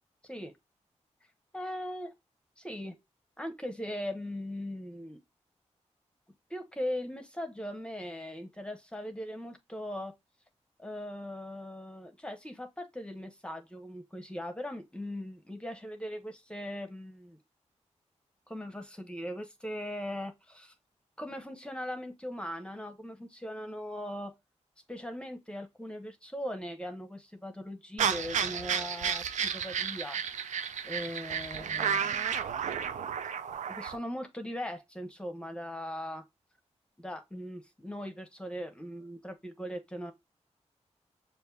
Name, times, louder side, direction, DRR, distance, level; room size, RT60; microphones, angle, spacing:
voice 1, 1.5-2.1 2.6-3.0 3.4-5.2 6.5-10.1 10.8-17.4 18.5-20.7 21.2-24.3 24.9-30.2 30.8-32.1 32.8-32.9 33.7-36.2 37.0-40.1, equal, 10° left, 0.8 m, -39 dB
sound 1, 28.0-34.0, right 7 dB, 90° right, 0.4 m, -32 dB
6.3 x 2.5 x 2.3 m
wide cardioid pair, 90°, 12 cm